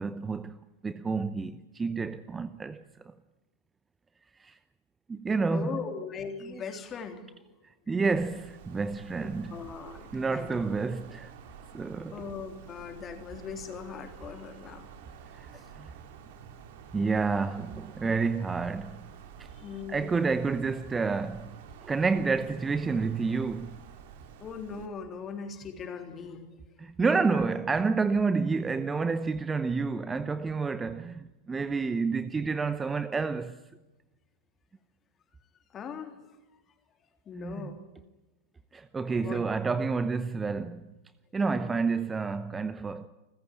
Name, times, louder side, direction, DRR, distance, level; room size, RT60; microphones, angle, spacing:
voice 1, 0.0-3.1 4.4-4.6 5.1-5.8 6.4-6.6 7.6-9.6 10.1-11.3 11.7-12.2 15.3-15.9 16.9-19.0 19.4-19.5 19.9-23.8 26.8-33.6 37.3-37.7 38.7-40.9 41.3-43.1, right 4 dB, 15° right, 0.8 m, -29 dB
voice 2, 5.5-7.2 9.2-10.5 12.1-14.9 15.5-15.7 19.6-20.4 24.4-26.5 35.7-36.4 37.3-37.9 39.2-39.4, left 6 dB, 25° left, 3.6 m, -40 dB
Wind, 8.1-24.9, right 7 dB, 50° right, 2.7 m, -49 dB
29.5 x 15.0 x 9.9 m
figure-of-eight pair, 90°, 0 cm